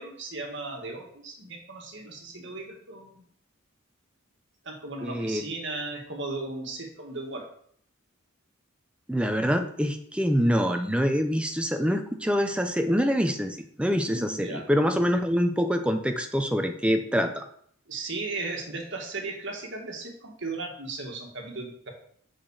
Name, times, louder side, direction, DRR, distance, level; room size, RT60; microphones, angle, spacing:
voice 1, 0.0-3.2 4.6-7.5 14.1-14.7 17.9-21.9, right 3 dB, 55° right, 2 dB, 1.9 m, -36 dB
voice 2, 5.0-5.4 9.1-17.4, equal, 5° right, 6 dB, 0.7 m, -25 dB
6.5 x 6.0 x 6.5 m, 0.63 s
head